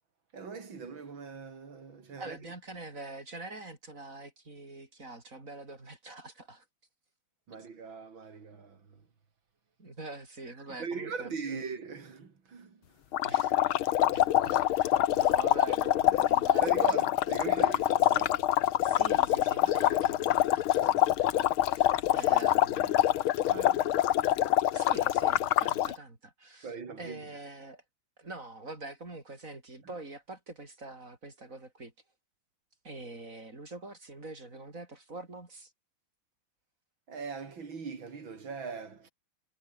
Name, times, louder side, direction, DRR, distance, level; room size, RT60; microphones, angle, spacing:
voice 1, 0.3-2.4 7.5-9.0 10.8-12.8 16.1-16.2 16.6-18.5 23.5-24.0 26.6-27.3 37.1-39.1, right 5 dB, 65° right, 3.7 m, -40 dB
voice 2, 2.2-6.6 7.6-7.7 9.8-11.7 13.2-17.1 18.1-18.3 18.8-23.4 24.7-27.8 28.2-31.9 32.8-35.7, right 2 dB, 40° right, 4.9 m, -45 dB
sound 1, 13.1-26.0, left 13 dB, 80° left, 1.8 m, -25 dB
omnidirectional pair, 2.3 m